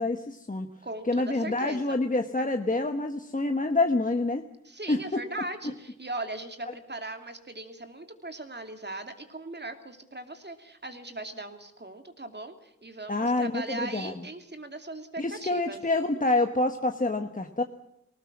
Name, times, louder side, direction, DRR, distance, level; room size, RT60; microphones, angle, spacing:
voice 1, 0.0-0.7 1.0-4.4 4.9-5.2 13.1-14.1 15.2-17.6, left 2 dB, 25° left, 5 dB, 1.3 m, -27 dB
voice 2, 0.8-2.0 4.6-15.8 16.2-16.3, right 2 dB, 35° right, 7 dB, 2.8 m, -39 dB
20.0 x 19.0 x 7.4 m, 0.81 s
wide cardioid pair, 90°, 30 cm